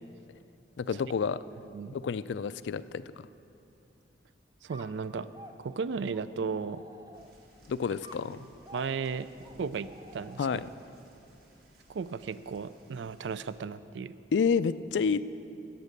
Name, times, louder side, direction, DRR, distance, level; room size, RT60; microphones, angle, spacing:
voice 1, 0.8-1.4 1.9-3.3 7.7-8.4 10.4-10.7 14.3-15.2, left 6 dB, 80° left, 15 dB, 0.4 m, -29 dB
voice 2, 4.6-5.3 5.6-6.8 8.7-9.3 9.6-10.4 11.9-14.1, right 5 dB, 85° right, 16 dB, 0.4 m, -35 dB
sound 1, 4.7-7.6 8.0-10.9, equal, 20° right, 0.7 m, -52 dB
sound 2, 7.1-13.6, right 1 dB, 60° right, 2.0 m, -59 dB
14.0 x 9.2 x 6.6 m, 2.6 s
head